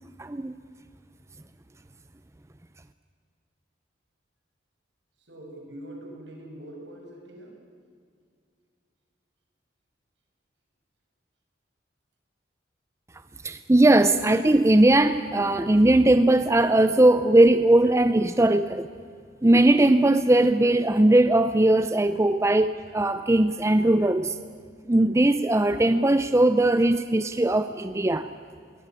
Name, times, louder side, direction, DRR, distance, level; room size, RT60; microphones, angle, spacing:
voice 1, 0.2-0.5 13.4-18.9 19.4-24.4 24.9-28.3, right 1 dB, 15° right, 11 dB, 0.5 m, -19 dB
voice 2, 5.2-7.6, right 1 dB, 70° right, 1 dB, 6.0 m, -43 dB
21.5 x 19.5 x 9.7 m, 2.2 s
head